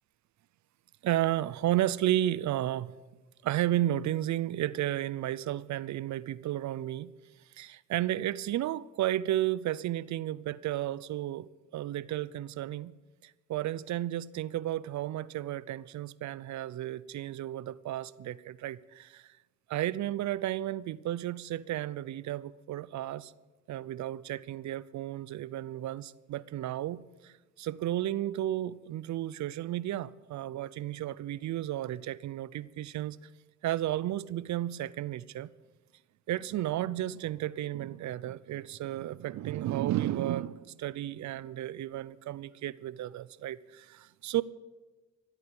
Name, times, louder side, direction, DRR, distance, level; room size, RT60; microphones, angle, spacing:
voice 1, 1.0-2.9 3.4-7.1 7.6-12.9 13.2-19.2 19.7-23.3 23.7-33.2 33.6-35.5 36.3-44.4, right 13 dB, 70° right, 0.6 m, -33 dB
15.5 x 8.4 x 8.9 m
cardioid pair, 90°, 30 cm